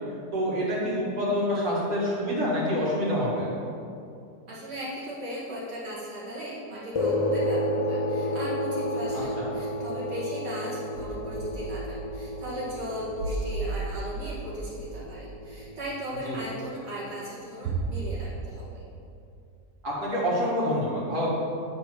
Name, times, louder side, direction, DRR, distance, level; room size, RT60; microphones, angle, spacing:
voice 1, 0.3-3.5 9.1-9.5 16.2-16.4 19.8-21.3, equal, 65° right, -8 dB, 2.2 m, -27 dB
voice 2, 4.5-18.8, equal, 40° right, -8 dB, 2.0 m, -37 dB
sound 1, 6.9-15.7, left 1 dB, 45° left, 0.4 m, -31 dB
sound 2, 9.1-9.5 9.8-9.9 10.9-16.0 17.6-18.4, right 4 dB, 90° right, 1.4 m, -35 dB
9.7 x 3.5 x 5.9 m, 2.5 s
omnidirectional pair, 1.7 m